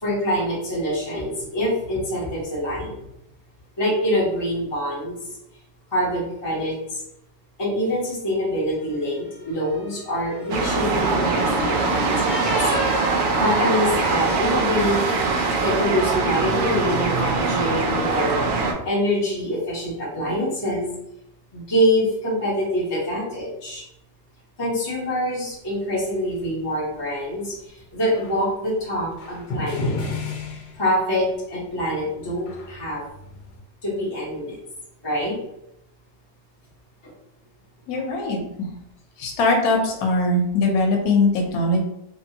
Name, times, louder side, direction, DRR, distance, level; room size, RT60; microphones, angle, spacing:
voice 1, 0.0-3.0 3.8-5.2 5.9-7.0 7.6-12.7 13.4-15.0 15.6-18.4 18.8-20.9 21.5-23.8 24.6-27.6 27.9-29.9 30.8-33.0 33.8-34.6 35.0-35.4, equal, 30° left, -7 dB, 0.5 m, -25 dB
sound 1, 9.0-14.5, right 1 dB, 35° right, 0.9 m, -33 dB
sound 2, 10.5-18.7, right 3 dB, 75° right, 0.7 m, -22 dB
sound 3, 28.1-28.5 29.2-31.4 31.6-33.6, left 3 dB, 85° left, 1.3 m, -32 dB
voice 2, 37.9-38.4 39.2-41.8, left 2 dB, 65° left, 1 dB, 1.1 m, -21 dB
3.1 x 2.6 x 2.8 m, 0.79 s
omnidirectional pair, 1.9 m